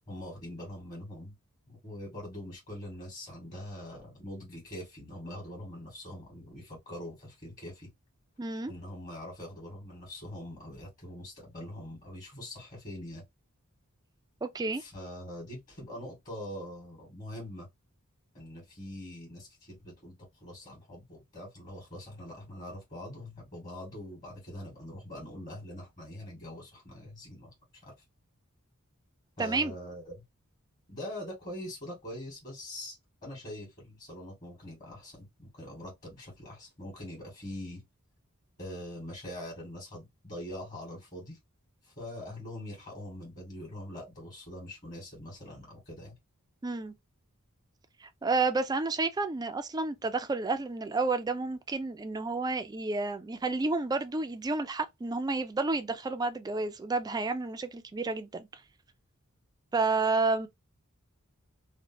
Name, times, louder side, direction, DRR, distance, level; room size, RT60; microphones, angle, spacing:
voice 1, 0.1-1.3 1.7-7.9 8.7-13.2 14.8-17.7 18.3-27.5 27.8-27.9 29.4-30.2 30.9-33.0 33.2-37.8 38.6-41.4 41.8-46.1, left 1 dB, 40° left, 1.6 m, -43 dB
voice 2, 8.4-8.7 14.4-14.8 29.4-29.7 46.6-46.9 48.0-58.5 59.7-60.5, right 3 dB, 20° right, 0.3 m, -30 dB
3.0 x 2.1 x 2.6 m
head